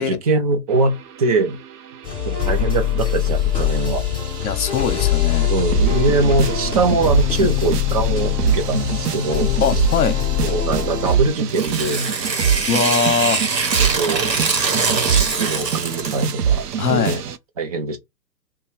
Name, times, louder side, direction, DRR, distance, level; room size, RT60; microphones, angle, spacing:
voice 1, 0.0-1.6 2.2-4.0 5.4-9.6 10.4-12.1 13.9-14.3 15.1-17.2 17.6-18.0, right 3 dB, 25° right, 0.5 m, -22 dB
sound 1, 0.7-17.4, right 8 dB, 65° right, 0.7 m, -25 dB
sound 2, 2.0-11.2, left 11 dB, 10° left, 0.9 m, -22 dB
voice 2, 4.4-5.5 9.6-10.2 12.7-13.4 16.8-17.2, left 6 dB, 60° left, 1.0 m, -21 dB
Tearing, 11.5-16.3, right 4 dB, 85° right, 1.2 m, -22 dB
3.2 x 2.3 x 4.2 m
figure-of-eight pair, 125°, 50 cm